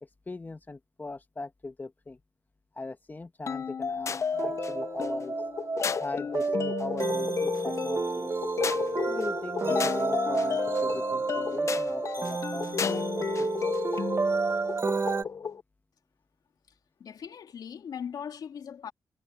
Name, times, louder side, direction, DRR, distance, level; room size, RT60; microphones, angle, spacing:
voice 1, 0.0-2.2 2.7-5.3 6.0-8.3 9.0-13.7, left 3 dB, 25° left, 1.5 m, -40 dB
sound 1, 3.5-15.6, left 6 dB, 45° left, 0.6 m, -32 dB
F maj soft intro, 4.3-15.2, right 4 dB, 35° right, 1.2 m, -31 dB
sound 2, 6.2-13.0, right 8 dB, 75° right, 4.6 m, -57 dB
voice 2, 17.0-18.9, left 7 dB, 75° left, 2.7 m, -39 dB
cardioid pair, 90°, 7 cm